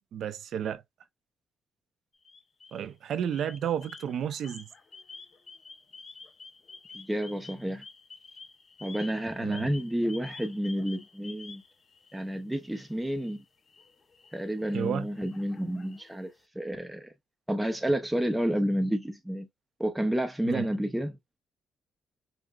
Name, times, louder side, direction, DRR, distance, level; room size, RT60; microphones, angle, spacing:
voice 1, 0.1-0.8 2.7-4.7 9.4-9.7 14.7-15.1 20.4-20.7, right 9 dB, 70° right, 0.4 m, -32 dB
sound 1, 2.1-2.9 3.3-12.3 12.7-16.4, left 4 dB, 40° left, 0.7 m, -50 dB
voice 2, 6.9-7.8 8.8-11.6 12.1-13.4 14.3-16.3 16.6-17.1 17.5-19.5 19.8-21.2, equal, 5° right, 0.4 m, -30 dB
5.0 x 2.0 x 2.3 m
cardioid pair, 90°, 0 cm